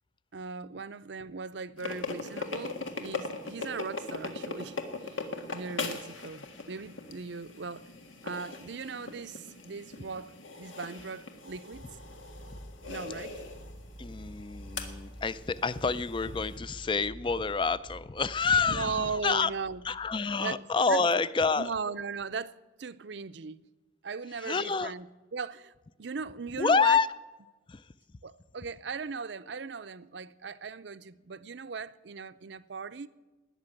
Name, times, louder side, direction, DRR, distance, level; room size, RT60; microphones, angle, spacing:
voice 1, 0.3-7.9 8.2-12.0 12.9-13.4 18.7-19.8 20.4-20.6 20.9-21.0 21.6-23.7 24.0-25.1 25.3-25.7 26.0-27.0 28.2-33.1, right 5 dB, 65° right, 0.6 m, -38 dB
sound 1, 1.8-16.6, left 3 dB, 90° left, 1.7 m, -40 dB
sound 2, 11.7-20.2, equal, 45° left, 5.6 m, -48 dB
voice 2, 14.0-19.5 19.8-21.7 24.4-24.9 26.6-27.1 27.7-27.8, left 5 dB, 25° left, 0.4 m, -28 dB
19.5 x 6.8 x 9.0 m
head